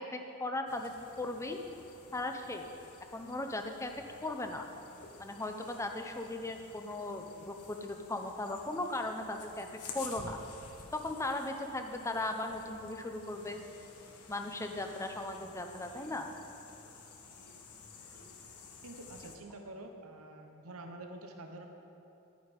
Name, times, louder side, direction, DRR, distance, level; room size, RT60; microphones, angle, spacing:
voice 1, 0.0-1.6 2.1-2.6 3.1-3.9 4.2-4.7 5.2-9.7 9.9-10.4 10.9-13.6 14.3-16.3, left 2 dB, 15° left, 5 dB, 0.6 m, -37 dB
sound 1, 0.7-19.4, left 4 dB, 90° left, 1.3 m, -52 dB
voice 2, 18.8-21.7, right 2 dB, 75° right, 4 dB, 1.0 m, -47 dB
11.0 x 9.3 x 5.3 m, 2.9 s
head